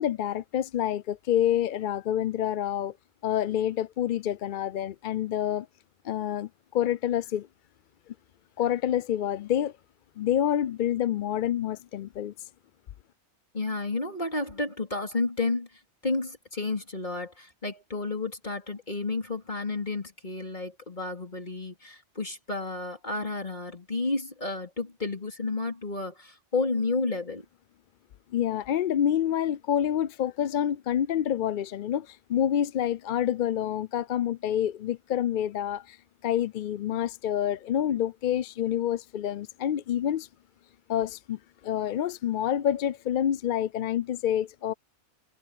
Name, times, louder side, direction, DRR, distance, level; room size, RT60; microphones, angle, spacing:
voice 1, 0.0-2.9 3.2-5.7 6.0-7.5 8.6-9.7 10.2-12.3 28.3-36.0 36.2-40.3 40.9-44.7, left 10 dB, 60° left, 0.5 m, -27 dB
voice 2, 13.5-27.4, left 3 dB, 40° left, 4.0 m, -31 dB
omnidirectional pair, 1.2 m